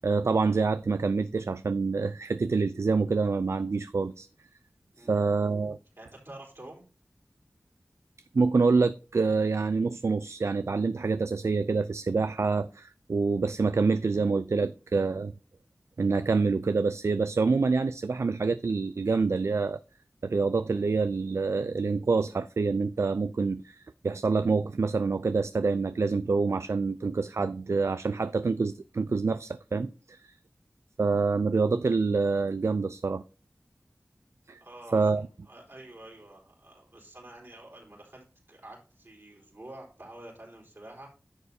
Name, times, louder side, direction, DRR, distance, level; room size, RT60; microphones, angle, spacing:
voice 1, 0.0-4.3 5.0-5.8 8.3-15.3 16.0-19.8 20.2-30.4 31.0-33.2 34.5-34.6 34.9-35.2, right 4 dB, 65° right, 0.4 m, -26 dB
voice 2, 6.0-6.8 34.6-41.1, right 1 dB, 50° right, 4.0 m, -48 dB
10.5 x 7.0 x 2.8 m
wide cardioid pair, 60°, 5 cm